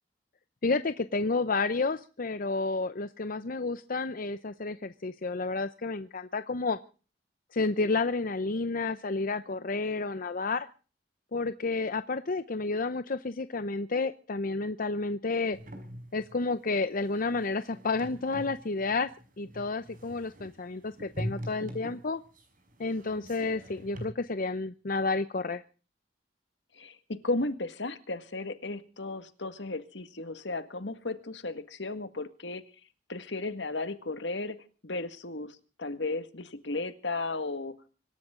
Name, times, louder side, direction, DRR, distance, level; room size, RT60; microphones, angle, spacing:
voice 1, 0.6-6.8 7.5-10.7 11.3-15.6 16.1-19.1 19.4-22.2 22.8-25.6, left 3 dB, 50° left, 11 dB, 0.7 m, -30 dB
sound 1, 15.5-24.0, equal, 50° right, 5.7 m, -43 dB
voice 2, 26.8-32.6 33.1-34.6 34.8-37.9, left 2 dB, 75° left, 10 dB, 1.9 m, -35 dB
25.5 x 13.0 x 3.8 m, 0.38 s
head